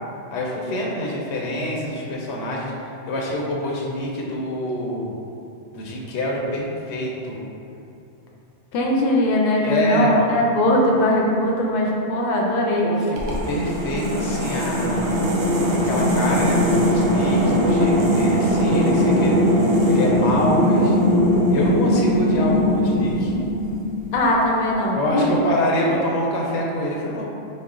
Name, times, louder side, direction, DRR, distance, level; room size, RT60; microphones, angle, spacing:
voice 1, 0.3-5.1 5.7-7.4 9.6-10.2 12.8-15.2 15.7-19.4 19.9-21.0 21.5-23.3 24.9-27.2, left 1 dB, 90° left, -2 dB, 0.9 m, -26 dB
voice 2, 8.7-12.9 24.1-25.3, left 1 dB, 65° left, -1 dB, 0.7 m, -20 dB
sound 1, 13.2-24.2, equal, 85° right, 0.9 m, -20 dB
4.2 x 2.0 x 3.6 m, 2.7 s
omnidirectional pair, 1.1 m